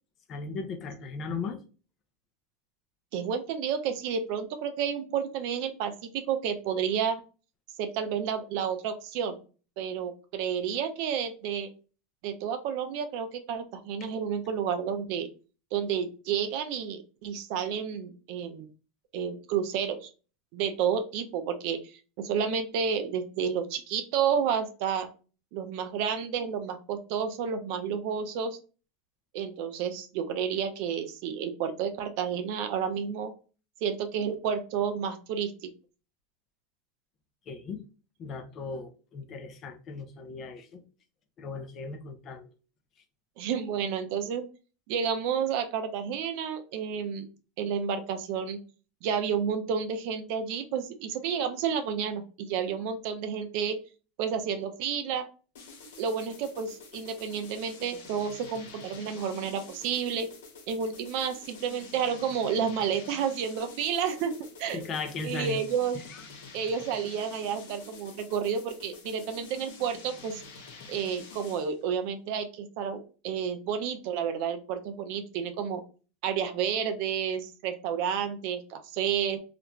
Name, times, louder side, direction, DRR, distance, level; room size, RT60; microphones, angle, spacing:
voice 1, 0.3-1.6 14.0-14.1 37.5-37.8 38.2-40.8 41.4-42.5 64.7-65.6 65.9-66.2, left 4 dB, 40° left, 7 dB, 0.5 m, -37 dB
voice 2, 3.1-7.2 7.8-9.4 9.8-11.7 12.2-15.3 15.7-18.7 19.1-20.1 20.5-21.8 22.2-25.1 25.5-28.6 29.3-33.3 33.8-35.7 43.4-44.4 44.9-47.3 47.6-48.6 49.0-53.8 54.2-55.2 56.0-60.3 60.7-64.9 65.2-66.0 66.5-70.4 70.9-75.8 76.2-79.4, right 7 dB, 60° right, 8 dB, 0.4 m, -30 dB
sound 1, 55.6-71.8, left 4 dB, 80° left, 0.7 m, -48 dB
2.4 x 2.1 x 2.9 m, 0.35 s
supercardioid pair, 115°, 0 cm